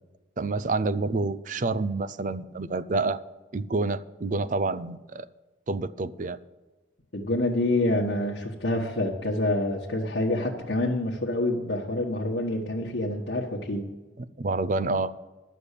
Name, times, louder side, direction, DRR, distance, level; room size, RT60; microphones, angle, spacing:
voice 1, 0.4-3.2 3.5-5.3 5.7-6.4 14.2-15.1, right 3 dB, 40° right, 15 dB, 0.5 m, -28 dB
voice 2, 7.1-13.8, left 1 dB, 70° left, -4 dB, 1.3 m, -27 dB
11.5 x 7.0 x 8.3 m, 1.2 s
head